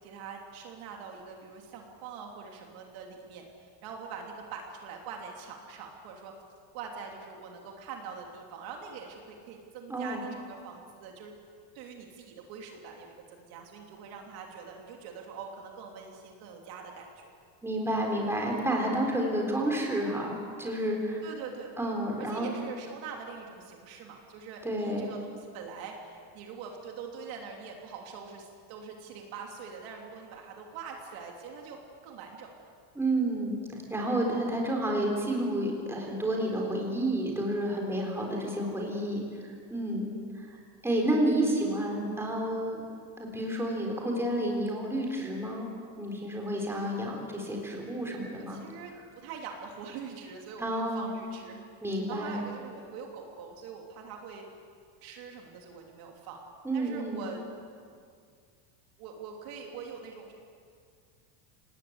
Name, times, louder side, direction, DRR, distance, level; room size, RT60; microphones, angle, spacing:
voice 1, 0.0-6.3 6.7-11.3 11.7-17.3 21.2-21.7 22.2-31.8 32.0-32.7 38.3-38.8 48.4-54.4 55.0-56.4 56.7-57.4 59.0-60.3, right 5 dB, 50° right, 1 dB, 3.0 m, -44 dB
voice 2, 9.9-10.2 17.6-21.2 21.8-22.5 24.6-25.1 33.0-33.6 33.9-40.6 40.8-42.8 43.2-45.7 46.0-48.6 50.6-51.1 51.8-52.4 56.6-57.2, right 1 dB, 5° right, 0 dB, 3.9 m, -30 dB
27.5 x 19.5 x 8.1 m, 2.2 s
cardioid pair, 165°, 48 cm